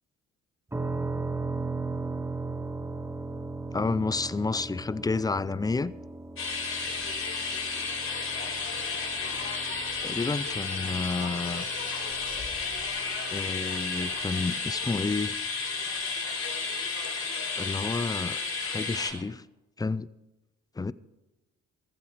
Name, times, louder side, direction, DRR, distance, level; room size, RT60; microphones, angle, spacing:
sound 1, 0.7-14.4, right 3 dB, 10° right, 1.1 m, -38 dB
voice 1, 3.7-5.9 10.0-11.7 13.3-15.4 17.5-19.4 19.8-20.1 20.8-20.9, left 3 dB, 15° left, 0.5 m, -30 dB
sound 2, 6.4-19.1, left 4 dB, 45° left, 3.9 m, -32 dB
15.0 x 12.5 x 5.0 m
cardioid pair, 90°, 30 cm